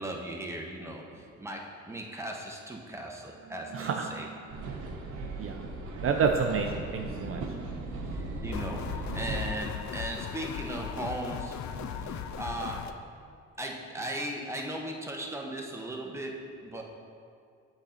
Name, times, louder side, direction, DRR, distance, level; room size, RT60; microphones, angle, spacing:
voice 1, 0.0-4.3 8.1-13.1 13.6-16.8, right 1 dB, 10° right, 0 dB, 0.9 m, -38 dB
voice 2, 3.7-4.3 4.6-5.7 6.0-7.4 11.8-12.2, right 5 dB, 50° right, 3 dB, 0.4 m, -31 dB
sound 1, 4.5-9.6, right 2 dB, 75° right, 0.9 m, -37 dB
sound 2, 8.5-12.9, left 8 dB, 70° left, 0.5 m, -38 dB
7.9 x 3.9 x 4.3 m, 2.3 s
cardioid pair, 90°, 30 cm